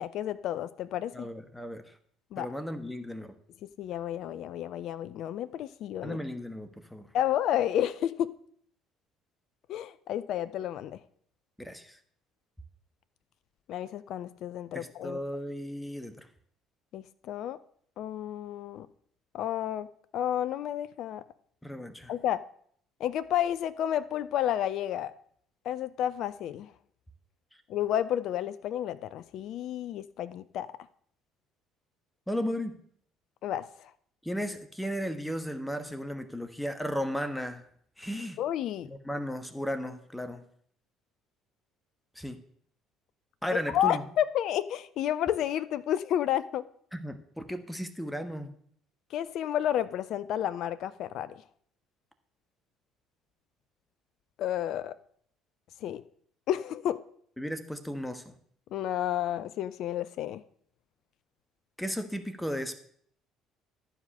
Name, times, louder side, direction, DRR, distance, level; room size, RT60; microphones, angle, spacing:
voice 1, 0.0-1.3 2.3-2.5 3.8-6.2 7.1-8.3 9.7-11.0 13.7-15.2 16.9-17.6 18.0-18.9 19.3-19.9 20.1-21.2 22.1-22.4 23.0-25.1 25.7-26.7 27.7-30.7 33.4-33.9 38.4-38.9 43.7-46.6 49.1-51.3 54.4-54.9 55.8-56.0 56.5-57.0 58.7-60.4, left 11 dB, 55° left, 0.4 m, -31 dB
voice 2, 1.1-1.8 2.4-3.3 6.0-7.1 11.6-12.0 14.7-16.3 21.6-22.1 32.3-32.7 34.2-37.6 38.0-38.4 38.8-40.4 42.1-42.4 43.4-44.0 46.9-48.5 57.4-58.3 61.8-62.8, equal, 5° left, 1.3 m, -35 dB
12.5 x 4.9 x 6.5 m
figure-of-eight pair, 55°, 0 cm